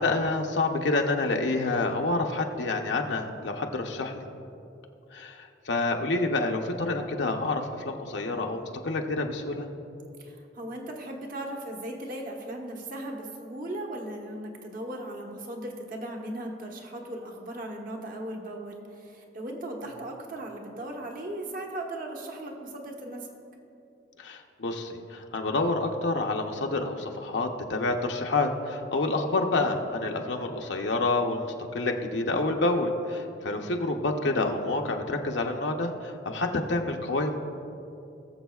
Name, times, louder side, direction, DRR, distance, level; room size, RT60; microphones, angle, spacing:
voice 1, 0.0-4.3 5.1-9.7 24.2-37.4, left 2 dB, 70° left, 3 dB, 0.7 m, -28 dB
voice 2, 10.2-23.3, right 1 dB, 50° right, 1 dB, 1.2 m, -37 dB
20.0 x 7.2 x 2.4 m, 2.7 s
head